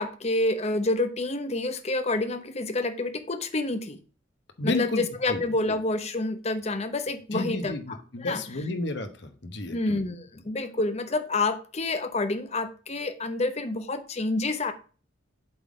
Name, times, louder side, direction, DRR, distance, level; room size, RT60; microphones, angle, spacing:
voice 1, 0.0-4.0 4.6-7.7 8.2-8.4 9.7-14.7, left 2 dB, 35° left, 9 dB, 0.7 m, -28 dB
voice 2, 4.6-5.0 5.3-5.4 7.3-10.0, left 2 dB, 60° left, 8 dB, 1.0 m, -31 dB
7.8 x 3.8 x 4.9 m, 0.37 s
head